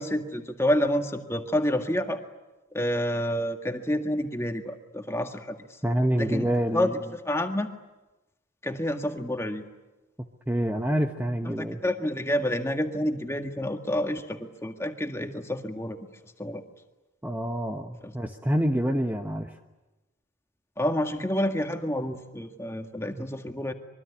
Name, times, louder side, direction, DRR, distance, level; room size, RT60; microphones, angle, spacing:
voice 1, 0.0-2.2 2.7-5.8 6.2-7.7 8.6-9.6 11.4-16.0 16.4-16.6 18.0-18.1 20.8-23.7, equal, 15° left, 5 dB, 1.8 m, -29 dB
voice 2, 5.8-6.9 10.5-11.8 17.2-19.5, equal, 10° right, 4 dB, 1.1 m, -27 dB
25.0 x 23.5 x 9.8 m, 1.1 s
head